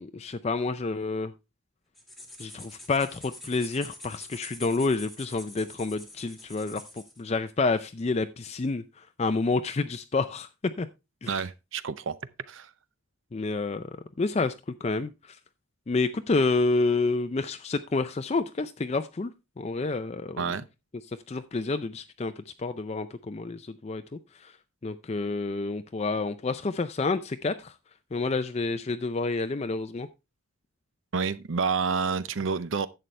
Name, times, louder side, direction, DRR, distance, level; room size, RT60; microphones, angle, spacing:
voice 1, 0.0-1.3 2.4-10.9 11.2-11.4 13.3-13.9 14.2-15.4 15.9-19.3 19.6-20.4 21.1-24.6 24.8-27.8 28.1-30.1, left 3 dB, 30° left, 0.4 m, -29 dB
sound 1, 2.0-7.2, left 1 dB, ahead, 1.5 m, -46 dB
voice 2, 11.3-12.2 12.5-12.7 20.4-20.7 31.1-32.9, right 5 dB, 60° right, 0.6 m, -29 dB
11.0 x 7.7 x 3.2 m
head